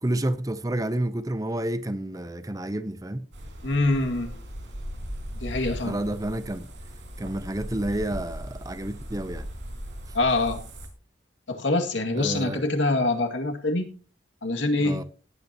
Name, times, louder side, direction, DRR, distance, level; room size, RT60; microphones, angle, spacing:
voice 1, 0.0-3.3 5.9-6.7 7.2-9.5 12.1-12.6 14.8-15.0, right 1 dB, 20° right, 0.6 m, -29 dB
sound 1, 3.3-10.9, equal, 75° right, 5.0 m, -38 dB
voice 2, 3.6-4.3 5.4-6.0 10.1-10.6 11.5-13.9 14.4-15.0, left 2 dB, 80° left, 2.1 m, -25 dB
18.0 x 9.4 x 2.9 m
head